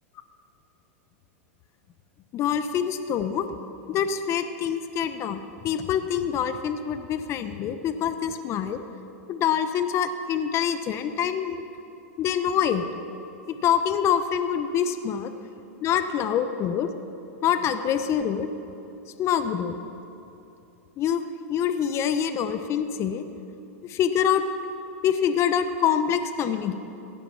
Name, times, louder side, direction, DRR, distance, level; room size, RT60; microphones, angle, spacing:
voice 1, 2.3-3.5 3.9-8.8 9.3-11.6 12.2-12.8 13.5-15.3 15.8-16.9 17.4-18.5 19.2-19.8 21.0-21.2 21.5-23.2 23.9-24.4 25.0-26.7, left 8 dB, 35° left, 10 dB, 0.8 m, -25 dB
16.5 x 11.0 x 5.8 m, 2.9 s
hypercardioid pair, 110°, 8 cm